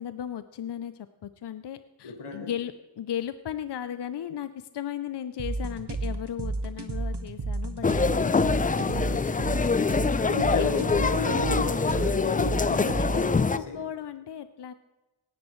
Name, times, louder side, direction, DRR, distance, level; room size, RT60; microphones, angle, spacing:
voice 1, 0.0-10.1 10.6-10.7 12.6-13.2 13.5-14.7, left 10 dB, 55° left, 12 dB, 0.6 m, -36 dB
voice 2, 2.0-2.5 10.1-13.8, left 4 dB, 85° left, 3 dB, 2.0 m, -34 dB
sound 1, 5.4-13.4, right 3 dB, 55° right, 1.5 m, -32 dB
sound 2, 7.8-13.6, left 4 dB, 20° left, 0.3 m, -25 dB
18.0 x 10.5 x 3.1 m, 1.1 s
cardioid pair, 45°, 48 cm